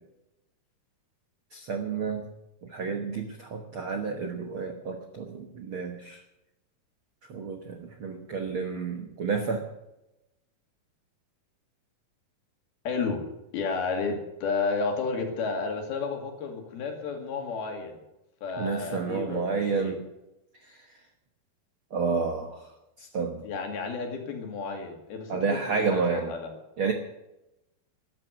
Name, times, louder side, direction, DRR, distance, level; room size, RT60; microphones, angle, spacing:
voice 1, 1.5-2.3 2.6-6.2 7.3-9.6 18.6-20.0 20.7-20.8 21.9-22.6 23.0-23.4 25.3-26.3 26.8-26.9, right 5 dB, 80° right, 4 dB, 1.1 m, -30 dB
voice 2, 12.9-13.2 13.5-18.0 18.4-20.0 23.4-26.5, left 4 dB, 80° left, 3 dB, 4.2 m, -32 dB
13.5 x 11.0 x 8.0 m, 0.92 s
omnidirectional pair, 4.3 m